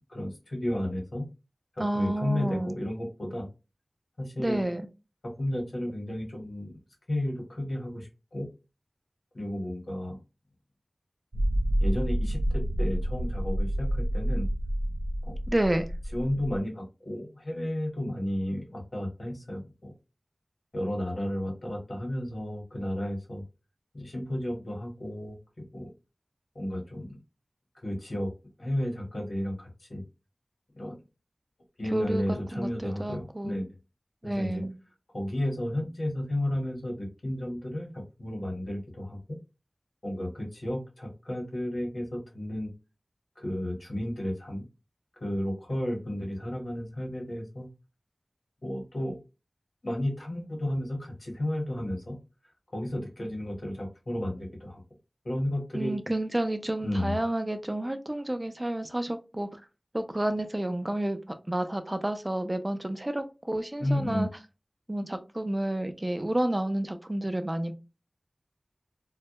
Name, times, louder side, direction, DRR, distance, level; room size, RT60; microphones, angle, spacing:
voice 1, 0.1-1.2 1.7-3.5 4.2-4.6 5.4-6.8 7.1-8.5 9.3-10.2 11.8-12.4 12.8-14.5 15.3-15.4 16.1-19.9 20.7-23.4 23.9-25.4 25.7-25.9 26.5-27.2 27.7-28.3 28.6-30.0 30.8-30.9 31.8-33.7 34.2-34.6 35.1-39.4 40.0-42.7 43.4-44.6 45.2-47.7 48.6-49.2 49.8-52.2 52.7-54.8 55.2-55.9 56.8-57.1 63.8-64.3, left 1 dB, 70° left, -1 dB, 1.0 m, -32 dB
voice 2, 1.8-2.7 4.4-4.8 15.5-15.9 31.9-32.2 32.5-33.6 34.2-34.8 55.7-59.5 59.9-61.2 61.5-64.3 64.9-67.7, right 1 dB, 25° right, 7 dB, 0.4 m, -30 dB
sound 1, 11.3-16.6, equal, 80° right, 0.7 m, -28 dB
2.2 x 2.0 x 2.8 m, 0.29 s
wide cardioid pair, 60°, 0 cm